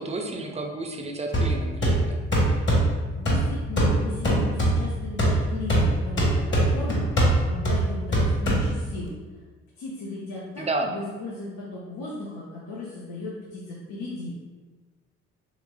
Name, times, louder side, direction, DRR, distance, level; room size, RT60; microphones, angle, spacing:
voice 1, 0.0-2.6 10.6-10.9, right 2 dB, 20° right, 2 dB, 0.5 m, -32 dB
sound 1, 1.3-9.1, right 1 dB, 30° left, 1.2 m, -23 dB
voice 2, 3.2-9.1 9.8-14.3, left 2 dB, 65° left, -5 dB, 0.7 m, -36 dB
3.2 x 3.0 x 2.2 m, 1.3 s
hypercardioid pair, 50°, 36 cm